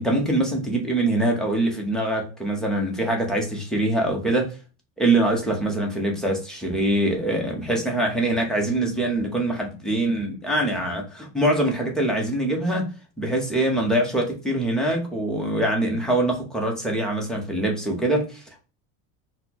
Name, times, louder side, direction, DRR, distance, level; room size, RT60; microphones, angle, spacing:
voice 1, 0.0-4.6 5.0-12.9 13.2-18.6, right 1 dB, ahead, 0.6 m, -24 dB
3.9 x 2.0 x 2.7 m
cardioid pair, 170°, 35 cm